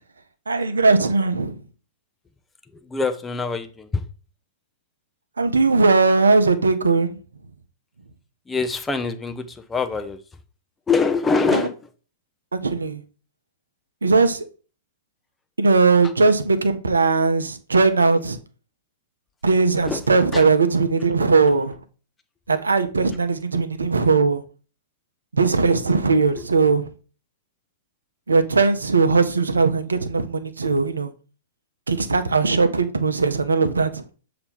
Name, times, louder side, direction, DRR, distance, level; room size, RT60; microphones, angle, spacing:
voice 1, 0.5-1.6 5.4-7.2 11.5-11.6 12.5-13.0 14.0-14.5 15.6-18.4 19.4-21.8 22.5-24.4 25.3-26.9 28.3-31.1 31.9-34.0, right 4 dB, 75° right, 0.7 m, -19 dB
voice 2, 2.7-4.0 8.5-10.2 10.9-11.7 19.9-20.0 20.3-20.4, left 4 dB, 10° left, 0.6 m, -24 dB
6.9 x 2.9 x 5.3 m
figure-of-eight pair, 105°, 0 cm